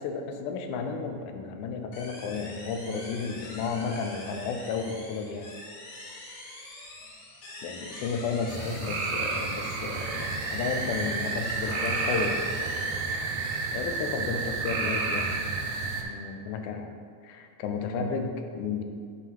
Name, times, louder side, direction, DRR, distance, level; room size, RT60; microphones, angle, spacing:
voice 1, 0.0-5.5 7.6-12.4 13.7-15.6 16.0-17.0 17.2-18.8, left 5 dB, 85° left, 5 dB, 2.1 m, -33 dB
sound 1, 1.9-13.5, left 2 dB, 65° left, 2.1 m, -44 dB
sound 2, 8.5-16.0, right 4 dB, 75° right, 1.6 m, -30 dB
7.8 x 4.5 x 3.6 m, 2.2 s
omnidirectional pair, 3.4 m